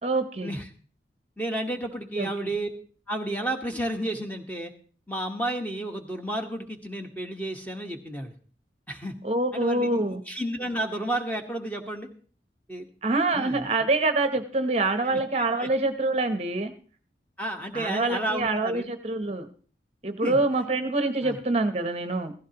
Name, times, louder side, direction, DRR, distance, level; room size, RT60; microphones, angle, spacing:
voice 1, 0.0-0.5 2.2-2.3 9.2-10.2 13.0-16.7 17.7-19.5 20.0-22.3, right 2 dB, 35° right, 8 dB, 0.8 m, -25 dB
voice 2, 1.4-2.7 3.1-4.7 5.1-8.4 8.9-9.1 9.5-12.1 12.7-12.9 13.3-13.7 15.0-15.2 15.6-15.7 17.4-18.9 20.2-20.4 21.2-21.4, right 1 dB, 10° left, 3 dB, 1.2 m, -32 dB
16.0 x 15.0 x 2.9 m, 0.42 s
head